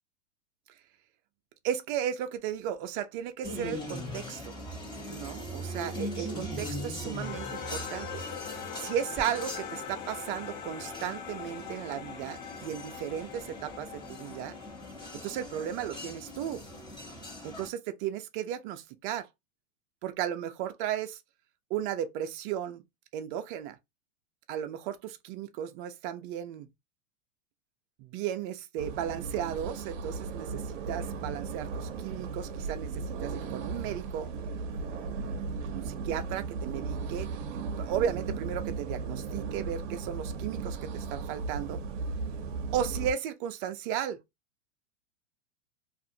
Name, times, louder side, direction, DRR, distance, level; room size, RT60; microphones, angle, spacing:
voice 1, 1.6-4.6 5.1-8.2 8.7-14.5 15.2-16.6 17.4-19.3 20.0-21.2 21.7-22.8 23.1-23.8 24.5-26.7 28.0-34.3 35.7-37.3 37.8-41.8 42.7-44.2, right 10 dB, 40° right, 0.5 m, -35 dB
sound 1, 3.4-17.7, equal, 10° left, 1.2 m, -41 dB
sound 2, 7.2-15.8, left 8 dB, 45° left, 1.1 m, -43 dB
sound 3, 28.8-43.1, right 4 dB, 75° right, 0.7 m, -36 dB
2.5 x 2.5 x 2.6 m
supercardioid pair, 135°, 38 cm